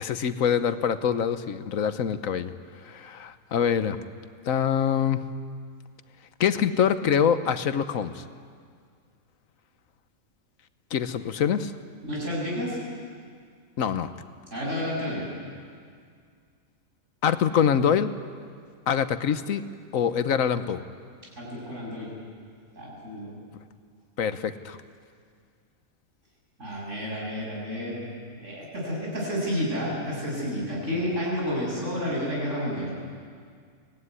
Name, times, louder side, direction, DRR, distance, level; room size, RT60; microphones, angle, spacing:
voice 1, 0.0-2.5 2.9-4.0 4.4-5.2 6.4-8.2 10.9-11.7 13.8-14.1 17.2-18.1 18.9-19.6 19.9-20.8 24.2-24.8, left 8 dB, 80° left, 11 dB, 1.3 m, -24 dB
voice 2, 12.1-12.8 14.5-15.3 21.4-22.1 22.8-23.4 26.6-28.0 28.4-32.9, equal, 60° right, -4 dB, 8.1 m, -30 dB
23.5 x 18.0 x 9.7 m, 2.1 s
omnidirectional pair, 1.4 m